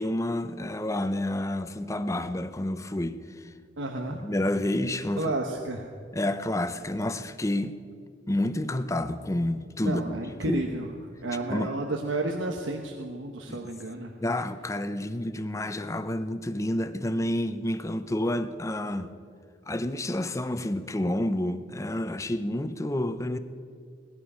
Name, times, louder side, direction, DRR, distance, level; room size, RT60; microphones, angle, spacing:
voice 1, 0.0-3.5 4.1-5.3 6.1-7.8 8.3-10.6 11.5-11.7 13.5-13.6 14.2-19.1 19.7-23.4, left 1 dB, 15° left, 11 dB, 0.6 m, -29 dB
voice 2, 3.8-4.2 5.2-5.9 9.8-10.9 11.2-14.1, right 2 dB, 85° right, 2 dB, 1.1 m, -31 dB
18.0 x 12.0 x 5.6 m, 2.2 s
head